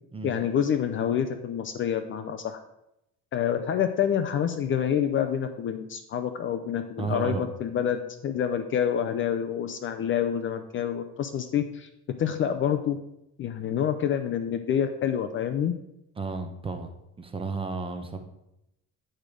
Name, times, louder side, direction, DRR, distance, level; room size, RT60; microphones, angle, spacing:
voice 1, 0.2-2.6 3.3-11.9 12.2-13.0 13.4-15.8, left 9 dB, 35° left, 9 dB, 0.5 m, -27 dB
voice 2, 7.0-7.5 16.2-16.9 17.2-18.2, right 4 dB, 15° right, 6 dB, 0.8 m, -32 dB
8.8 x 5.1 x 6.2 m, 0.85 s
cardioid pair, 160°, 35 cm